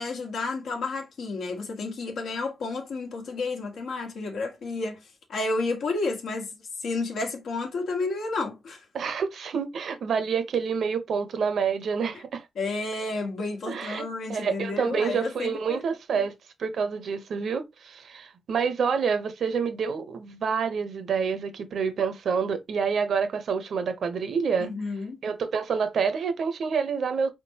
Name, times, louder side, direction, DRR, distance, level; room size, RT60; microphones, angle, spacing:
voice 1, 0.0-5.0 5.3-6.5 6.8-8.8 12.1-12.2 12.6-15.8 16.1-16.2 24.6-25.2, left 3 dB, 70° left, 1.2 m, -31 dB
voice 2, 8.9-12.5 13.7-14.0 14.3-16.3 16.6-24.7 25.2-27.3, right 6 dB, 60° right, 0.8 m, -27 dB
4.6 x 3.7 x 2.8 m
wide cardioid pair, 180°, 0 cm